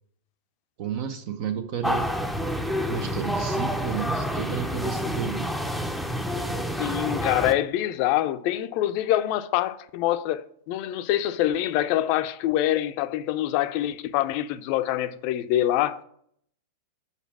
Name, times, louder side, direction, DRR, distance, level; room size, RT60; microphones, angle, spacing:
voice 1, 0.8-2.1 2.9-5.5, right 8 dB, 50° right, 0.6 m, -31 dB
sound 1, 1.8-7.5, equal, ahead, 0.6 m, -28 dB
voice 2, 6.8-16.0, left 13 dB, 50° left, 0.4 m, -25 dB
5.1 x 4.1 x 6.0 m
figure-of-eight pair, 95°, 0 cm